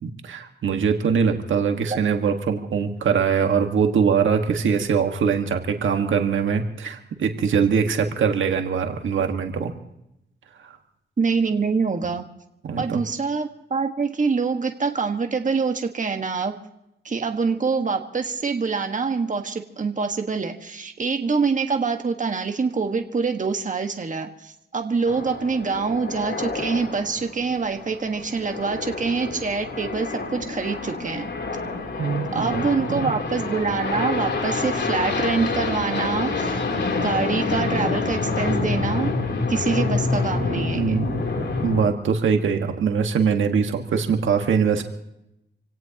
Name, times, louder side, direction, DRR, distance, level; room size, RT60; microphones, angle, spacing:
voice 1, 0.0-9.7 12.6-13.0 32.0-32.6 32.9-33.1 40.7-44.8, right 6 dB, 85° right, 5 dB, 1.7 m, -22 dB
voice 2, 11.2-12.2 12.8-16.6 17.0-31.3 32.3-36.6 36.9-39.1 39.5-41.0, right 4 dB, 40° right, 5 dB, 1.6 m, -25 dB
sound 1, 25.1-41.9, left 3 dB, 65° left, 3.3 m, -27 dB
26.5 x 17.5 x 2.9 m, 0.84 s
cardioid pair, 70°, 20 cm